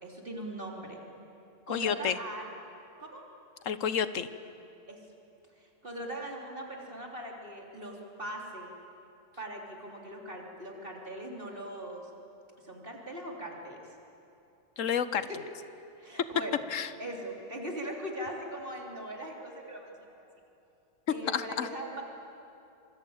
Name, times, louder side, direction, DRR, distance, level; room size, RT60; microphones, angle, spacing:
voice 1, 0.0-1.0 1.7-2.5 3.0-3.2 4.9-5.0 5.6-8.7 9.4-12.0 12.6-13.8 15.3-15.4 16.0-16.6 17.0-20.3 21.1-22.0, right 1 dB, 45° right, 0 dB, 3.6 m, -40 dB
voice 2, 1.7-2.2 3.6-4.3 14.8-15.2 16.7-16.9 21.3-21.7, left 7 dB, 85° left, 13 dB, 1.4 m, -30 dB
26.5 x 24.5 x 8.8 m, 2.8 s
omnidirectional pair, 1.3 m